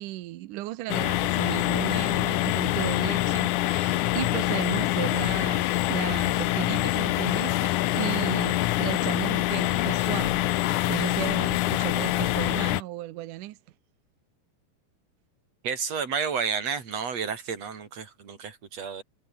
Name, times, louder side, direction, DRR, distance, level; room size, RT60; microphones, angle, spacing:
voice 1, 0.0-13.6, right 16 dB, 80° right, 1.9 m, -35 dB
sound 1, 0.9-12.8, left 16 dB, 85° left, 1.7 m, -25 dB
voice 2, 15.6-19.0, right 6 dB, 40° right, 4.2 m, -31 dB
omnidirectional pair, 4.7 m